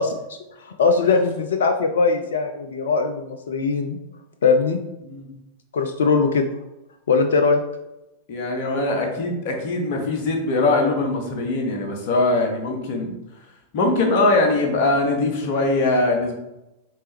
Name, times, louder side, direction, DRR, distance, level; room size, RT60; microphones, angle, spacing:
voice 1, 0.0-4.0 4.4-4.8 5.7-6.5 7.1-7.6, left 4 dB, 65° left, 6 dB, 0.4 m, -20 dB
voice 2, 8.3-13.1 13.7-16.3, left 2 dB, 45° left, 2 dB, 1.0 m, -21 dB
4.4 x 3.2 x 3.4 m, 0.93 s
figure-of-eight pair, 90°, 0 cm